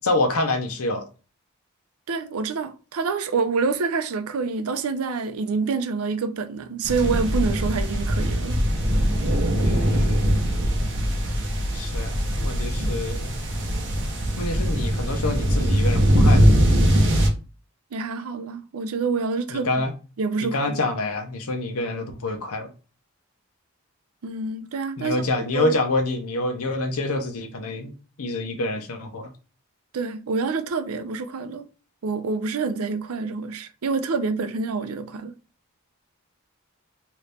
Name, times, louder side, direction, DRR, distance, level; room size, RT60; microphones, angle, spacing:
voice 1, 0.0-1.1 9.6-10.4 11.7-13.4 14.4-16.6 19.5-19.9 20.4-22.7 25.0-27.9 28.2-29.3, left 2 dB, 75° left, 0.7 m, -27 dB
voice 2, 2.1-8.6 17.9-19.8 20.2-20.8 24.2-25.2 25.5-25.7 29.9-31.7 32.0-35.3, right 4 dB, 75° right, 0.5 m, -27 dB
sound 1, 6.8-17.3, equal, 55° right, 0.8 m, -21 dB
2.9 x 2.6 x 3.3 m
head